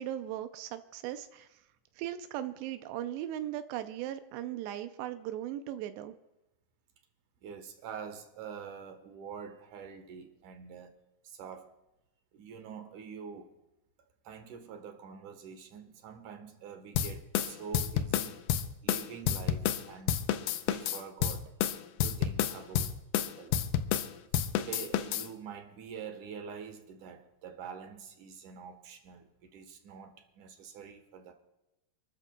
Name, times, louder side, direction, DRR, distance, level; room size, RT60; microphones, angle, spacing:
voice 1, 0.0-1.6 2.0-6.1, right 12 dB, 90° right, 9 dB, 2.8 m, -38 dB
voice 2, 7.4-10.9 11.2-11.7 12.3-13.5 14.2-18.5 18.8-20.2 20.6-21.5 22.0-22.9 23.4-23.7 24.6-31.3, right 6 dB, 65° right, 5 dB, 2.3 m, -46 dB
sound 1, 16.9-19.8 20.1-24.1 24.3-25.3, left 10 dB, 90° left, 2.0 m, -30 dB
28.5 x 13.5 x 2.3 m, 0.95 s
omnidirectional pair, 4.8 m